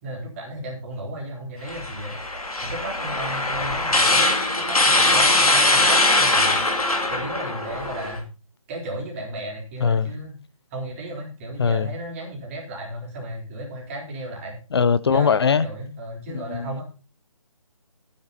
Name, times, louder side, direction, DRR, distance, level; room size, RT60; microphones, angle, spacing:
voice 1, 0.0-2.1 2.6-6.6 7.1-8.3 8.7-10.4 10.7-14.6 15.1-16.8, right 1 dB, 25° right, 4.3 m, -34 dB
sound 1, 1.7-8.2, left 2 dB, 85° left, 3.0 m, -21 dB
voice 2, 9.8-10.1 11.6-12.0 14.7-15.7 16.3-16.7, left 6 dB, 45° left, 0.8 m, -21 dB
12.5 x 9.7 x 4.2 m
figure-of-eight pair, 160°, 18 cm